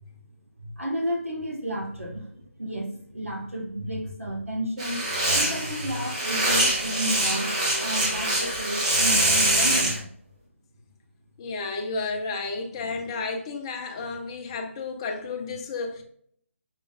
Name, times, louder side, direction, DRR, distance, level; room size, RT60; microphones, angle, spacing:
voice 1, 0.6-5.1 5.3-7.5 7.8-10.0, equal, 90° right, 1.4 m, -32 dB
sound 1, 4.8-10.0, right 1 dB, 30° right, 1.4 m, -24 dB
voice 2, 11.4-16.0, left 3 dB, 25° left, 0.6 m, -32 dB
5.9 x 3.8 x 2.4 m
figure-of-eight pair, 150°, 7 cm